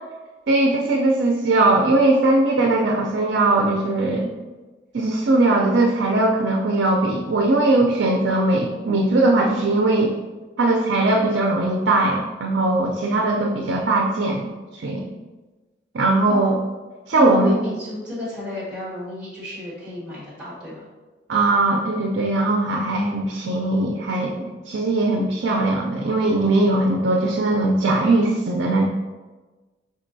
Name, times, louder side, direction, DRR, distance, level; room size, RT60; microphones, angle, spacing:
voice 1, 0.5-4.3 4.9-10.2 10.6-15.1 15.9-16.6 17.1-17.6 21.3-28.8, right 2 dB, 60° right, 1 dB, 0.4 m, -20 dB
voice 2, 13.1-13.4 16.3-16.5 17.1-20.8, left 1 dB, 5° right, -6 dB, 1.4 m, -32 dB
5.3 x 3.7 x 2.6 m, 1.2 s
head